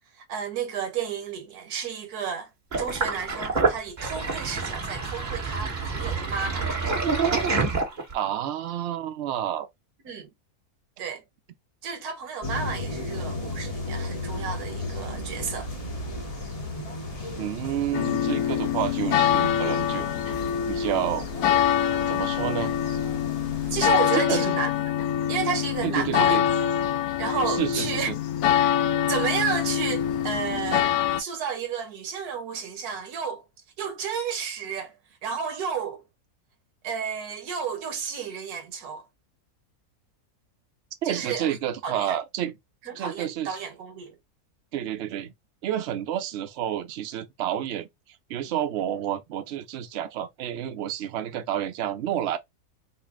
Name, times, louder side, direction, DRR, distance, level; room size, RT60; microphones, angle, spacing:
voice 1, 0.2-2.5 2.8-6.7 10.0-10.3 11.0-11.2 11.8-15.7 23.7-24.7 25.3-26.4 27.2-28.1 29.1-30.9 31.2-33.4 33.8-36.0 36.8-39.1 41.0-41.6 41.8-42.2 42.8-44.2, right 6 dB, 90° right, 1.4 m, -31 dB
Sink (filling or washing), 2.7-8.3, right 4 dB, 30° right, 1.2 m, -27 dB
voice 2, 8.1-9.7 17.4-20.3 20.7-21.3 22.1-22.7 24.1-24.6 25.8-26.4 27.5-28.2 41.0-42.6 43.0-43.6 44.7-45.3 45.6-47.9 48.3-52.4, right 11 dB, 60° right, 0.7 m, -30 dB
sound 1, 12.4-23.9, left 2 dB, 30° left, 0.8 m, -35 dB
sound 2, 17.9-31.2, left 10 dB, 70° left, 1.0 m, -25 dB
4.1 x 2.1 x 3.4 m
omnidirectional pair, 1.6 m